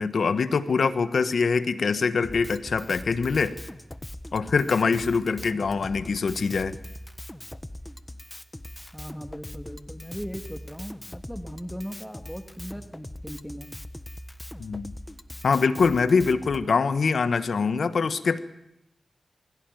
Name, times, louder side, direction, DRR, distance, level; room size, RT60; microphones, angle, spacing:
voice 1, 0.0-3.6 4.3-6.7 14.6-14.9 15.4-18.4, left 5 dB, 80° left, 12 dB, 1.2 m, -24 dB
Drum kit, 2.2-16.6, left 1 dB, 15° left, 1.3 m, -41 dB
voice 2, 8.9-13.7, equal, ahead, 7 dB, 2.0 m, -38 dB
22.5 x 16.5 x 9.2 m, 0.83 s
cardioid pair, 45°, 0 cm